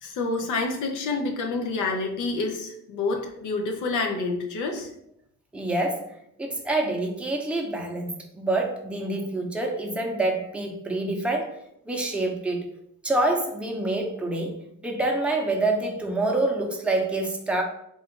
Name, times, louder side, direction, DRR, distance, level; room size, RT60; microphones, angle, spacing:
voice 1, 0.0-4.9, left 3 dB, 80° left, 3 dB, 0.7 m, -28 dB
voice 2, 5.5-6.1 6.4-11.5 11.9-12.6 13.0-17.6, right 2 dB, 5° right, 0 dB, 0.7 m, -26 dB
3.7 x 2.4 x 3.7 m, 0.75 s
cardioid pair, 90°, 30 cm